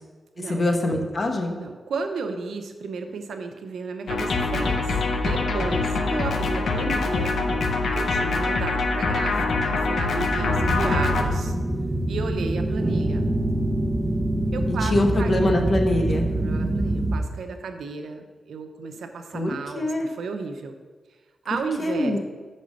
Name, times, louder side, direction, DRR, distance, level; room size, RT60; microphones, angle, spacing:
voice 1, 0.4-1.6 14.7-16.3 19.3-20.1 21.8-22.2, left 1 dB, 45° left, 3 dB, 1.1 m, -24 dB
voice 2, 1.5-7.4 7.9-11.6 12.1-13.3 14.5-15.3 16.1-20.7 21.5-22.2, right 4 dB, 90° right, 6 dB, 0.7 m, -33 dB
sound 1, 4.1-11.2, left 3 dB, 80° left, 0.8 m, -24 dB
sound 2, 10.3-17.2, right 1 dB, 25° right, 0.8 m, -25 dB
6.0 x 5.4 x 6.4 m, 1.4 s
cardioid pair, 75°, 0 cm